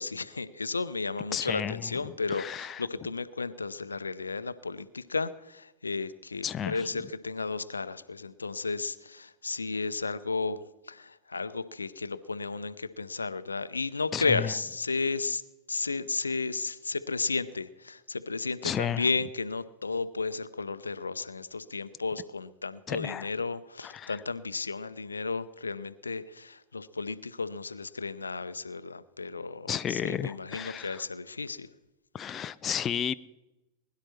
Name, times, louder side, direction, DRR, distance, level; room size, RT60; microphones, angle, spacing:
voice 1, 0.0-10.6 10.9-15.4 15.7-31.7, left 4 dB, 75° left, 0.6 m, -33 dB
voice 2, 1.3-1.8 2.3-2.8 6.4-6.8 14.1-14.5 18.6-19.0 22.9-23.3 23.8-24.1 29.7-31.0 32.1-33.1, left 9 dB, 25° left, 0.5 m, -32 dB
20.5 x 11.5 x 4.4 m
figure-of-eight pair, 90°, 0 cm